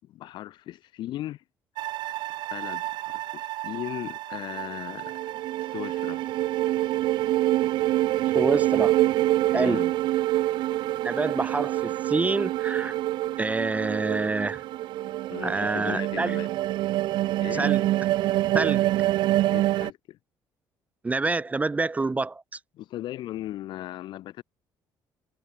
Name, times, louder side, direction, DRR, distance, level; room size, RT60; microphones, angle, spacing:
voice 1, 0.0-1.4 2.5-5.2 5.6-6.2 9.5-9.9 15.3-16.5 17.4-17.7 19.5-20.2 22.8-24.4, left 14 dB, 75° left, 6.8 m, -37 dB
sound 1, 1.8-19.9, right 15 dB, 80° right, 1.4 m, -26 dB
voice 2, 8.3-9.0 9.5-9.8 11.0-13.0 13.4-14.6 15.4-16.4 17.5-17.9 18.5-18.9 21.0-22.6, right 3 dB, 20° right, 0.5 m, -27 dB
cardioid pair, 105°, 8 cm